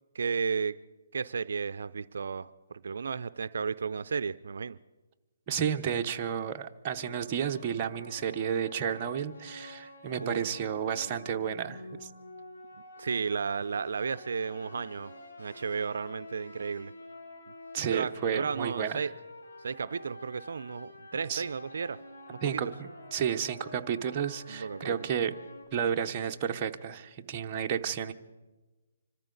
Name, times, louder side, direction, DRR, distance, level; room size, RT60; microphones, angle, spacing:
voice 1, 0.1-0.8 1.1-4.8 10.2-10.4 13.0-15.1 15.4-16.9 17.9-19.1 19.6-22.0 22.3-22.6 24.5-25.0, right 5 dB, 70° right, 14 dB, 0.4 m, -33 dB
voice 2, 5.5-12.1 17.7-19.0 21.3-21.4 22.4-25.3 25.7-28.1, right 8 dB, 25° right, 3 dB, 0.8 m, -32 dB
sound 1, 6.9-25.6, left 2 dB, 80° left, 5.8 m, -48 dB
26.0 x 13.5 x 3.9 m, 1.2 s
hypercardioid pair, 155°, 0 cm